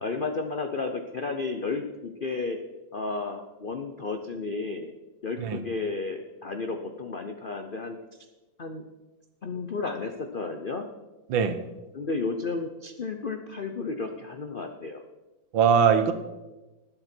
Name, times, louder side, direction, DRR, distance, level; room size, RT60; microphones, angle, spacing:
voice 1, 0.0-2.6 2.9-4.9 5.2-8.0 8.6-8.8 9.4-10.9 11.9-15.0, left 3 dB, 85° left, 6 dB, 0.4 m, -32 dB
voice 2, 11.3-11.6 15.5-16.1, right 7 dB, 80° right, 10 dB, 1.7 m, -21 dB
20.0 x 7.9 x 4.5 m, 1.1 s
omnidirectional pair, 2.1 m